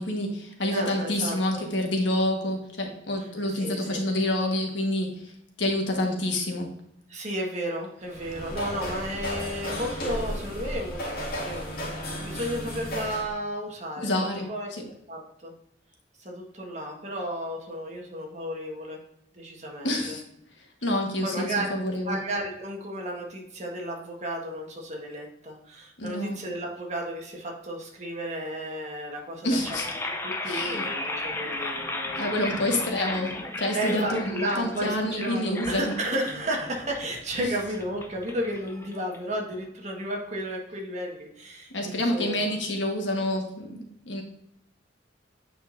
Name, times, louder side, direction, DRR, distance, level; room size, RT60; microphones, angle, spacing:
voice 1, 0.0-5.1 5.6-6.7 14.0-14.8 19.8-20.2 20.8-22.1 26.0-26.4 29.4-29.9 30.5-30.8 32.2-35.9 37.4-37.5 41.7-44.2, left 1 dB, 80° left, 2 dB, 1.5 m, -28 dB
voice 2, 0.7-1.6 3.2-3.3 3.5-4.0 7.1-14.7 15.1-15.5 16.2-19.0 19.3-20.2 21.2-29.6 30.0-32.3 33.7-42.5, equal, 40° right, 0 dB, 1.5 m, -33 dB
sound 1, 8.0-13.3, equal, 55° left, 2.2 m, -34 dB
sound 2, 29.5-39.5, left 2 dB, 15° left, 0.6 m, -35 dB
8.6 x 5.0 x 2.6 m, 0.75 s
head